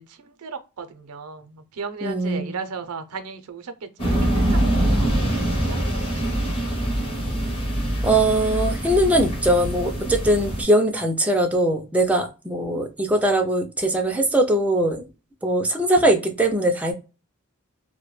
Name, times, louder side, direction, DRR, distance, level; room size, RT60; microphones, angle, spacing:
voice 1, 0.0-5.8, right 5 dB, 90° right, 0.5 m, -36 dB
voice 2, 2.0-2.6 8.0-15.0 15.4-16.9, right 1 dB, 5° right, 0.3 m, -21 dB
sound 1, 4.0-10.6, right 1 dB, 25° left, 0.7 m, -24 dB
2.1 x 2.1 x 3.1 m
head